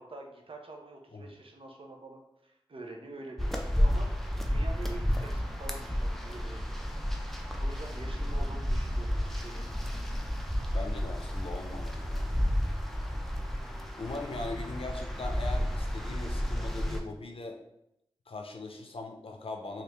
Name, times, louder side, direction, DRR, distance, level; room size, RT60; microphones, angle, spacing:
voice 1, 0.0-6.6 7.6-9.7, right 2 dB, 70° right, 1 dB, 0.6 m, -46 dB
sound 1, 3.4-17.0, equal, 5° left, 0.4 m, -31 dB
voice 2, 8.1-8.5 10.7-12.3 14.0-17.6 18.3-19.8, left 3 dB, 75° left, 3 dB, 0.5 m, -40 dB
3.2 x 2.4 x 2.9 m, 0.82 s
wide cardioid pair, 50°, 10 cm